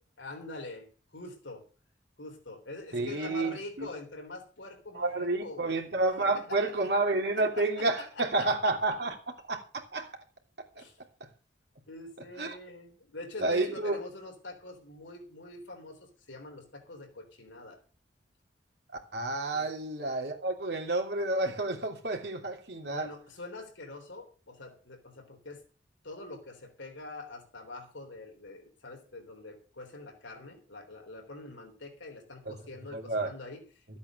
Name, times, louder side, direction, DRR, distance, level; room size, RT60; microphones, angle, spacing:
voice 1, 0.2-0.9 1.1-1.6 2.2-5.8 6.2-6.6 7.3-8.7 10.7-11.0 11.9-17.8 19.5-19.7 22.8-25.6 26.0-34.0, left 2 dB, 80° left, 3.7 m, -45 dB
voice 2, 2.9-3.9 4.9-9.2 9.5-10.2 10.8-10.9 12.4-12.6 13.4-14.0 19.1-23.1 32.9-33.3, right 2 dB, 60° right, 3.0 m, -30 dB
14.0 x 8.4 x 6.5 m
head